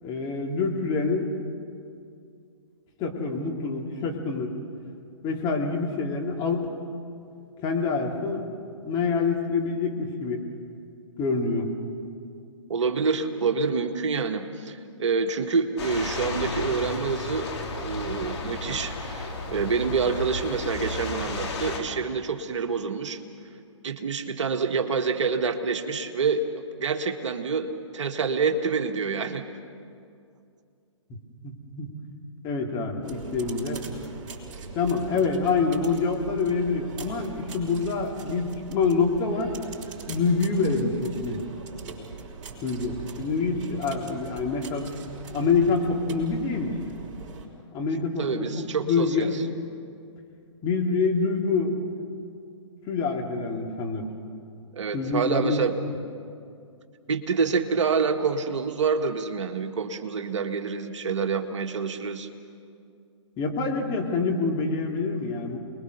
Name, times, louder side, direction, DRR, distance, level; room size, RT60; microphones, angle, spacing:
voice 1, 0.0-1.3 3.0-4.5 5.2-6.7 7.6-8.5 8.8-10.4 11.2-11.7 31.4-31.9 32.4-33.8 34.7-39.6 40.1-41.4 42.6-44.9 45.3-46.7 47.7-49.3 50.6-51.8 52.9-54.0 54.9-55.6 63.4-65.6, left 4 dB, 25° left, 0 dB, 2.9 m, -26 dB
voice 2, 12.7-17.5 17.7-23.2 23.8-26.4 26.8-29.4 48.2-49.4 54.7-55.7 57.1-62.3, right 5 dB, 65° right, 5 dB, 1.7 m, -27 dB
sound 1, 15.8-21.8, left 3 dB, 60° left, 3.7 m, -33 dB
sound 2, 33.0-47.5, right 4 dB, 35° right, 5.1 m, -41 dB
28.0 x 21.0 x 6.8 m, 2.4 s
hypercardioid pair, 130°, 16 cm